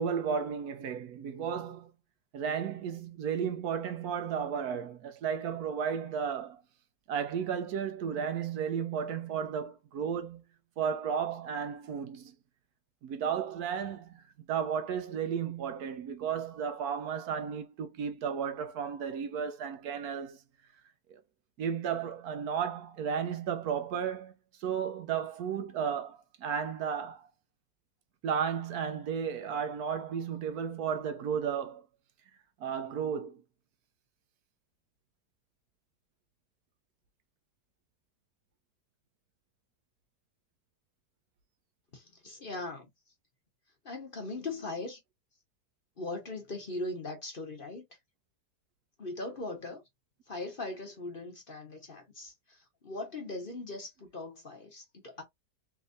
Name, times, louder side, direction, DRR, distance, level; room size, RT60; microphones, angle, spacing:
voice 1, 0.0-1.9 2.3-6.6 7.1-10.4 10.8-12.3 13.0-14.2 14.5-20.4 21.1-21.2 21.6-24.3 24.6-27.3 28.2-31.8 32.6-33.4, right 7 dB, 70° right, 1.1 m, -33 dB
voice 2, 41.9-42.9 43.8-45.0 46.0-47.9 49.0-49.8 50.3-55.2, left 2 dB, 35° left, 1.1 m, -40 dB
3.5 x 3.2 x 2.6 m
omnidirectional pair, 1.8 m